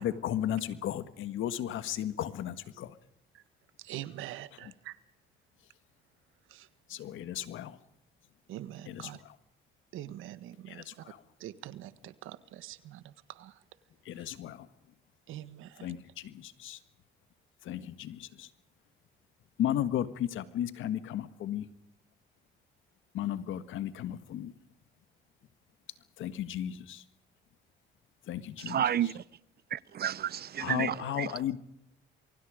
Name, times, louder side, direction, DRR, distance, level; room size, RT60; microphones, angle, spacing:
voice 1, 0.0-2.9 4.6-4.7 6.9-7.8 8.9-9.3 10.7-11.2 14.0-14.7 15.8-16.8 17.6-18.5 19.6-21.7 23.1-24.5 26.2-27.0 28.3-28.8 30.6-31.6, left 11 dB, 80° left, 1.7 m, -35 dB
voice 2, 3.8-4.9 6.5-6.7 8.5-9.2 9.9-10.8 11.4-13.5 15.3-16.0, right 13 dB, 90° right, 1.6 m, -44 dB
voice 3, 28.6-29.2 29.7-31.4, right 10 dB, 50° right, 0.8 m, -31 dB
28.5 x 23.5 x 5.1 m
cardioid pair, 90°, 20 cm